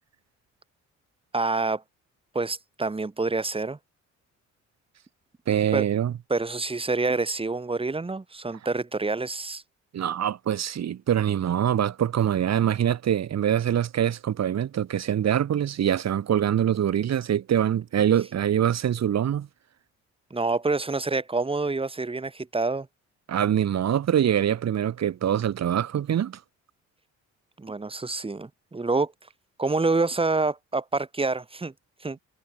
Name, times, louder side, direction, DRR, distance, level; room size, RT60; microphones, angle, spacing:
voice 1, 1.3-1.8 2.3-3.8 5.7-5.8 6.3-9.6 20.3-22.9 27.6-29.1 29.6-31.7 32.0-32.2, right 3 dB, 20° right, 1.9 m, -27 dB
voice 2, 5.5-6.1 9.9-19.5 23.3-26.4, right 10 dB, 60° right, 3.0 m, -24 dB
cardioid pair, 90°, 30 cm